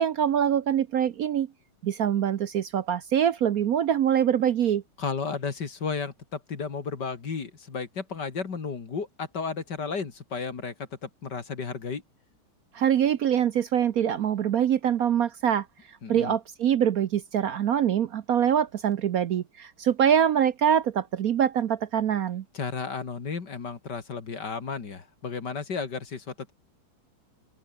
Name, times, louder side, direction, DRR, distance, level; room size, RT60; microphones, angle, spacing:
voice 1, 0.0-1.5 1.8-4.8 12.7-15.6 16.1-22.4, right 9 dB, 60° right, 0.9 m, -24 dB
voice 2, 5.0-12.0 16.0-16.3 22.5-26.5, left 5 dB, 55° left, 2.8 m, -33 dB
open air
omnidirectional pair, 2.3 m